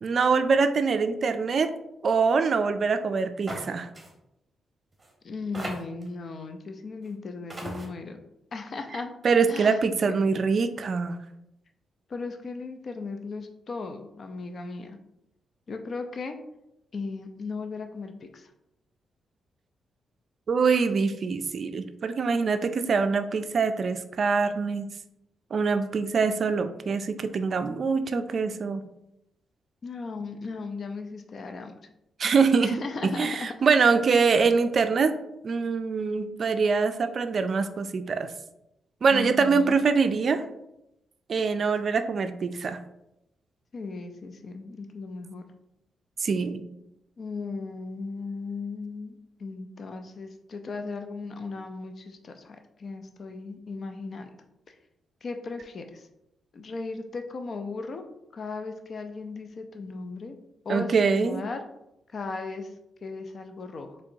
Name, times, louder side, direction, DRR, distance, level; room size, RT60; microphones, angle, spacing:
voice 1, 0.0-1.7 2.0-3.9 9.2-11.2 20.5-24.9 25.5-28.9 32.2-35.1 35.4-38.3 39.0-40.4 41.3-42.8 46.2-46.7 60.7-61.4, right 5 dB, 55° right, 10 dB, 0.3 m, -24 dB
sound 1, 3.5-3.7 4.0-4.1 5.0-5.1 5.5-6.1 7.1-7.2 7.5-7.9, right 1 dB, 25° right, 1.1 m, -36 dB
voice 2, 5.2-8.2 8.5-9.1 9.5-9.8 12.1-15.0 15.7-16.4 16.9-18.5 29.8-31.8 32.6-33.5 39.1-39.8 43.7-45.4 47.2-54.4 54.7-54.8 55.2-56.1 56.5-58.0 58.3-60.4 60.6-61.6 62.1-62.7 63.0-64.0, left 3 dB, 55° left, 6 dB, 0.5 m, -36 dB
4.4 x 3.0 x 2.6 m, 0.85 s
cardioid pair, 65°, 0 cm